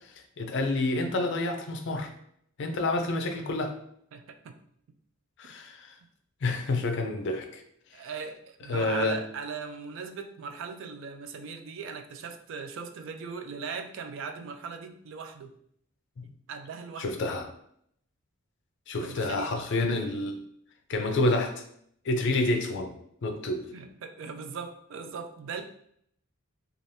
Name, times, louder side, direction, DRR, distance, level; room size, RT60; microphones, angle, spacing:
voice 1, 0.2-2.1 2.6-3.7 5.4-6.0 6.4-7.6 8.7-9.2 16.2-16.3 17.0-17.5 18.9-20.4 20.9-21.6 22.0-22.9 23.2-23.6, left 2 dB, 55° left, 5 dB, 0.4 m, -28 dB
voice 2, 4.1-4.6 7.9-15.5 16.5-17.2 19.0-19.6 23.7-25.6, right 5 dB, 60° right, 7 dB, 0.3 m, -39 dB
3.2 x 2.4 x 2.6 m, 0.68 s
head